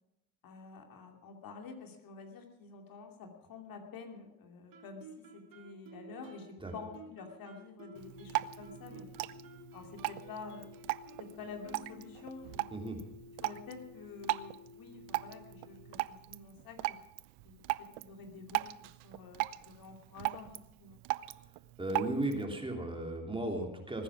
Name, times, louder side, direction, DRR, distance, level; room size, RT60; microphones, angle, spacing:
voice 1, 0.4-9.1 9.7-10.7 11.2-12.7 13.4-17.0 17.4-21.0, left 4 dB, 50° left, 3 dB, 2.7 m, -49 dB
Guitar, 4.7-12.4, right 5 dB, 55° right, 2.2 m, -55 dB
sound 1, 7.8-16.0, left 5 dB, 25° left, 1.4 m, -55 dB
Drip, 7.9-22.4, right 19 dB, 70° right, 0.7 m, -39 dB
voice 2, 21.8-24.0, right 1 dB, 10° right, 2 dB, 3.0 m, -35 dB
20.5 x 9.9 x 6.1 m, 0.87 s
supercardioid pair, 105°, 42 cm